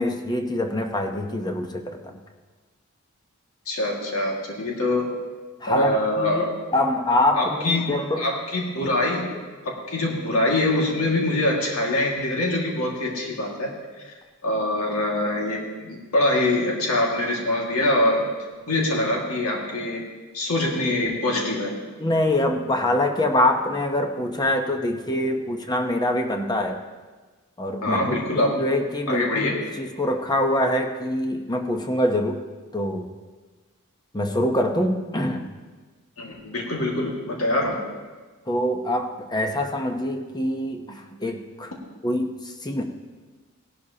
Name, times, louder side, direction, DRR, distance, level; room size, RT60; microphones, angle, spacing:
voice 1, 0.0-2.2 5.6-8.3 22.0-26.8 27.6-32.4 32.7-33.1 34.1-35.5 38.5-41.7 42.0-42.8, left 1 dB, 20° left, 5 dB, 0.9 m, -25 dB
voice 2, 3.7-5.1 5.7-6.5 7.3-7.9 8.2-9.3 9.6-13.7 14.0-14.1 14.4-18.2 18.7-20.0 20.3-21.7 27.8-28.5 29.1-29.5 36.2-37.8, left 1 dB, 85° left, -2 dB, 2.0 m, -24 dB
17.5 x 12.0 x 2.9 m, 1.3 s
head